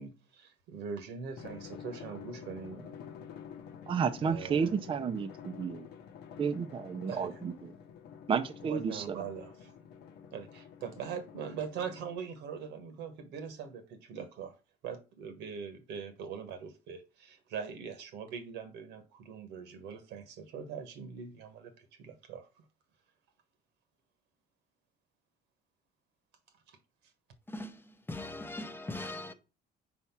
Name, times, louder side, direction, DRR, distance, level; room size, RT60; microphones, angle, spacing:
voice 1, 0.0-2.9 4.2-4.7 7.1-7.4 8.6-9.7 10.3-14.5 14.8-22.5, right 6 dB, 90° right, 1.3 m, -42 dB
Drum, 1.4-12.4, left 7 dB, 80° left, 0.9 m, -49 dB
voice 2, 3.9-5.9 6.4-7.7 8.3-9.2, right 6 dB, 30° right, 0.5 m, -32 dB
voice 3, 27.5-27.8 28.1-29.3, left 2 dB, 15° left, 0.7 m, -40 dB
4.8 x 4.2 x 5.8 m
cardioid pair, 110°, 17 cm